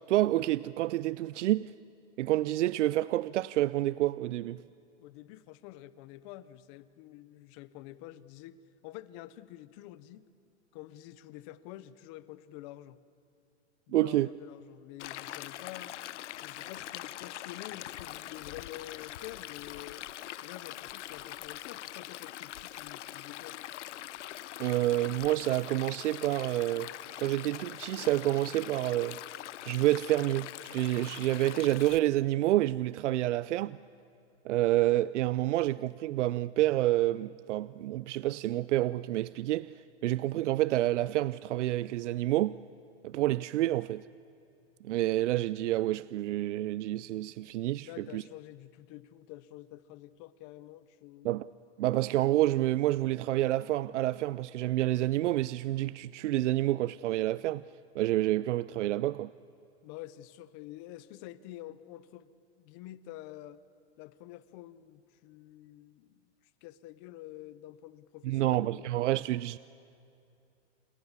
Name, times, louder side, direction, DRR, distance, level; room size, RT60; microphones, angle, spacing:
voice 1, 0.1-1.7 2.2-4.6 13.9-14.3 24.6-26.9 27.2-29.2 29.7-33.8 34.4-39.7 40.0-42.6 43.0-44.1 44.8-48.2 51.2-51.5 51.8-57.6 57.9-59.3 68.2-69.6, right 15 dB, 85° right, 0.5 m, -28 dB
voice 2, 5.0-10.3 10.7-13.0 13.9-16.0 16.4-20.1 20.4-23.6 47.8-51.3 59.8-62.3 62.6-63.6 64.0-66.2 66.6-68.9, left 15 dB, 25° left, 0.6 m, -48 dB
Stream, 15.0-32.0, left 14 dB, 80° left, 0.7 m, -43 dB
28.0 x 22.5 x 7.2 m
supercardioid pair, 165°, 35 cm